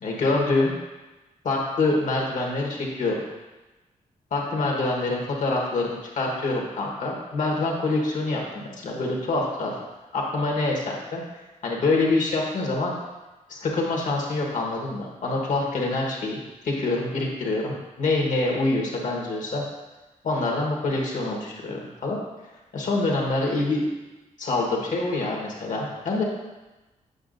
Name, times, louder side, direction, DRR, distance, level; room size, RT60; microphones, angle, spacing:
voice 1, 0.0-0.7 1.4-3.1 4.3-9.8 10.1-12.9 13.5-19.6 20.2-22.2 22.7-23.9 24.4-26.2, left 2 dB, 65° left, -1 dB, 1.3 m, -26 dB
8.0 x 5.6 x 2.6 m, 1.1 s
wide cardioid pair, 155°, 14 cm